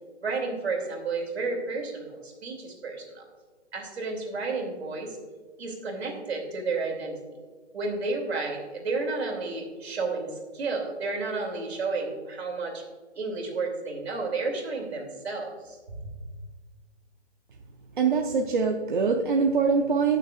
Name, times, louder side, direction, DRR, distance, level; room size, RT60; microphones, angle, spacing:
voice 1, 0.2-3.2 3.7-5.2 5.6-7.2 7.7-12.8 13.2-16.1, right 3 dB, 65° right, 2 dB, 2.9 m, -31 dB
voice 2, 18.0-20.2, right 5 dB, 45° right, 2 dB, 0.7 m, -23 dB
17.0 x 6.7 x 2.4 m, 1.5 s
hypercardioid pair, 175°, 35 cm